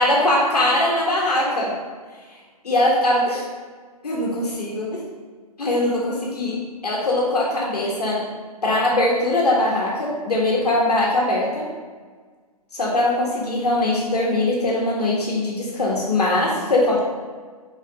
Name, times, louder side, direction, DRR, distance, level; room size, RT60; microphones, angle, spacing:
voice 1, 0.0-1.8 2.6-3.4 4.0-5.0 5.6-8.3 8.6-11.7 12.7-17.0, left 1 dB, 80° left, -4 dB, 1.7 m, -21 dB
5.7 x 4.8 x 3.6 m, 1.5 s
figure-of-eight pair, 130°, 20 cm